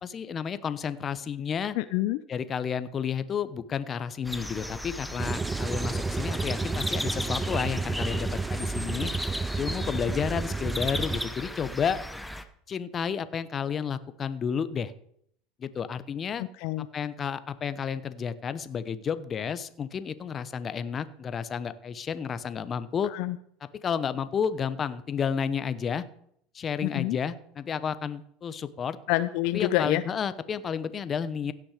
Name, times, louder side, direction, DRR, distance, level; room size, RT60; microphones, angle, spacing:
voice 1, 0.0-1.7 2.3-9.1 9.6-12.0 12.7-14.9 15.6-16.4 16.9-23.1 23.8-26.0 26.5-29.0 29.5-31.5, left 7 dB, 35° left, 14 dB, 0.8 m, -31 dB
voice 2, 1.8-2.2 16.4-16.9 23.1-23.4 26.8-27.2 29.1-30.0, left 16 dB, 65° left, 13 dB, 0.4 m, -27 dB
sound 1, 4.2-12.4, left 1 dB, 5° left, 0.9 m, -36 dB
sound 2, 5.2-11.3, right 3 dB, 20° right, 0.4 m, -31 dB
16.5 x 6.1 x 5.0 m, 0.69 s
hypercardioid pair, 90°, 0 cm